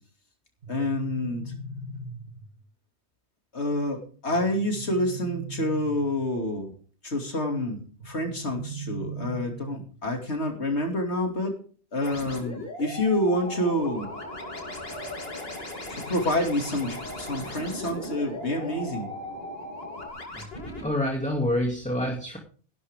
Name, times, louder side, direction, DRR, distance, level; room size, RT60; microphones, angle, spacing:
sound 1, 0.6-2.6 4.3-6.3 8.0-10.0, right 3 dB, 85° right, 2.0 m, -39 dB
voice 1, 0.7-1.4 3.5-6.7 7.0-7.8 8.0-11.6 11.9-14.1 15.9-19.1, left 1 dB, 80° left, 3 dB, 3.0 m, -28 dB
sound 2, 12.0-20.9, left 1 dB, 60° left, 3.5 m, -39 dB
sound 3, 13.2-20.1, left 1 dB, 40° left, 5.0 m, -42 dB
voice 2, 20.8-22.4, left 1 dB, 5° left, 0 dB, 2.6 m, -27 dB
15.5 x 12.0 x 3.7 m, 0.40 s
omnidirectional pair, 1.1 m